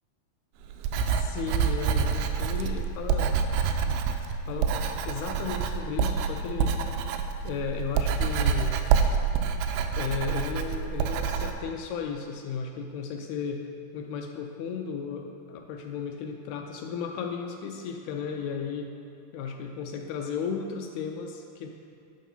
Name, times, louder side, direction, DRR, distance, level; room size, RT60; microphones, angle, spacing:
Writing, 0.7-11.5, right 6 dB, 85° right, 2.6 m, -27 dB
voice 1, 1.1-3.4 3.9-4.0 4.5-4.8 5.1-6.8 7.4-8.8 10.0-13.7 13.9-18.9 19.3-21.7, left 6 dB, 85° left, 3 dB, 2.5 m, -34 dB
11.0 x 4.8 x 5.5 m, 2.5 s
omnidirectional pair, 4.6 m